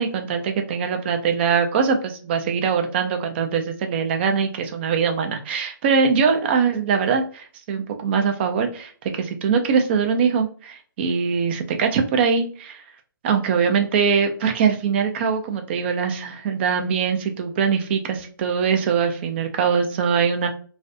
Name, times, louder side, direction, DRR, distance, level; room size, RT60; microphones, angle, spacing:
voice 1, 0.0-12.8 13.2-20.5, right 6 dB, 30° right, 5 dB, 0.4 m, -22 dB
2.4 x 2.2 x 2.6 m, 0.43 s
figure-of-eight pair, 135°, 12 cm